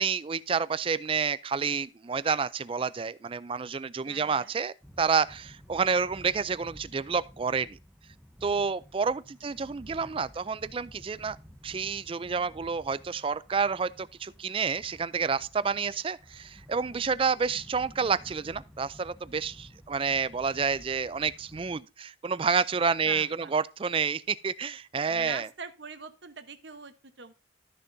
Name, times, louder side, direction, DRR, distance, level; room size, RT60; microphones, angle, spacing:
voice 1, 0.0-7.8 8.4-11.4 11.6-25.5, right 5 dB, 30° right, 0.4 m, -29 dB
voice 2, 4.0-4.5 9.4-10.4 23.0-23.5 25.1-27.3, right 5 dB, 65° right, 1.0 m, -44 dB
sound 1, 4.8-21.8, equal, 5° right, 0.8 m, -53 dB
13.0 x 6.7 x 2.7 m
head